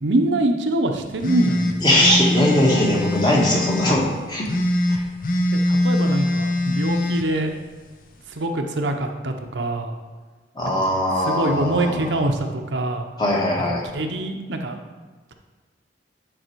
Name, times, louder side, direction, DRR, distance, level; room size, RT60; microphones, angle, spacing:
voice 1, 0.0-1.8 5.7-7.5 8.4-9.9 11.3-13.0 13.7-14.8, right 1 dB, 90° right, 4 dB, 0.8 m, -24 dB
sound 1, 1.2-4.0 4.4-7.3, left 1 dB, 50° left, 0.5 m, -22 dB
voice 2, 1.8-4.5 4.9-5.0 10.5-12.2 13.2-13.8, left 1 dB, 25° left, -3 dB, 1.4 m, -20 dB
9.3 x 4.1 x 4.6 m, 1.3 s
head